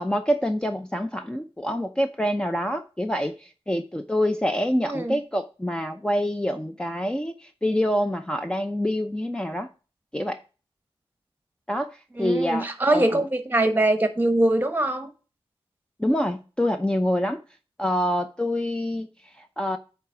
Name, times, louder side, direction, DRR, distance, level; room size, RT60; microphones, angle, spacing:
voice 1, 0.0-9.7 10.1-10.4 11.7-13.2 16.0-17.4 17.8-19.8, equal, 10° left, 0.6 m, -26 dB
voice 2, 4.8-5.2 12.2-15.1, right 1 dB, 20° right, 1.2 m, -23 dB
8.9 x 3.5 x 5.7 m
wide cardioid pair, 105°, 10 cm